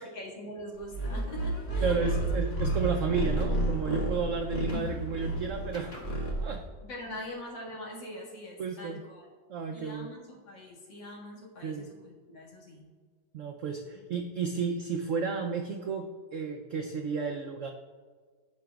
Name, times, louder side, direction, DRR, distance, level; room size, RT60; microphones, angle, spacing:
voice 1, 0.0-2.3 6.8-9.3 9.7-12.8 13.9-14.0, left 1 dB, 75° left, -4 dB, 2.6 m, -43 dB
sound 1, 0.9-6.7, right 1 dB, 35° left, 2.1 m, -31 dB
voice 2, 1.8-6.6 8.6-9.0 9.5-10.1 11.6-11.9 13.3-17.7, right 5 dB, 80° right, 4 dB, 0.7 m, -32 dB
16.0 x 5.8 x 2.3 m, 1.5 s
omnidirectional pair, 2.0 m